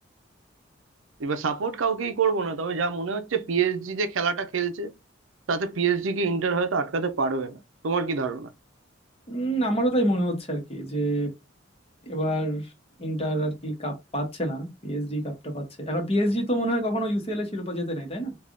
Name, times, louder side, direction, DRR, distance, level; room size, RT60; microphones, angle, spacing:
voice 1, 1.2-4.9 5.5-7.6 7.8-8.5, right 5 dB, 85° right, 0.5 m, -26 dB
voice 2, 9.3-11.3 12.1-12.7 13.0-18.4, right 1 dB, 30° left, 1.1 m, -27 dB
3.4 x 2.4 x 3.7 m
head